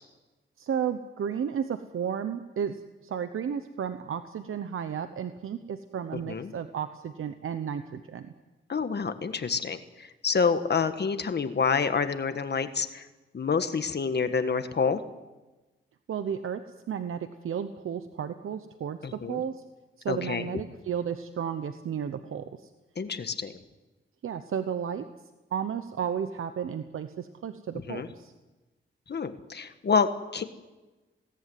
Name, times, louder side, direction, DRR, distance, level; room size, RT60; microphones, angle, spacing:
voice 1, 0.6-8.3 16.1-19.6 20.0-22.5 24.2-25.1 25.5-28.3, right 8 dB, 90° right, 9 dB, 1.0 m, -33 dB
voice 2, 8.7-13.1 13.3-15.0 19.0-19.4 20.1-20.5 23.0-23.5 27.9-28.1 29.1-30.4, left 5 dB, 55° left, 9 dB, 1.6 m, -28 dB
20.5 x 18.0 x 9.6 m, 1.1 s
wide cardioid pair, 95°, 21 cm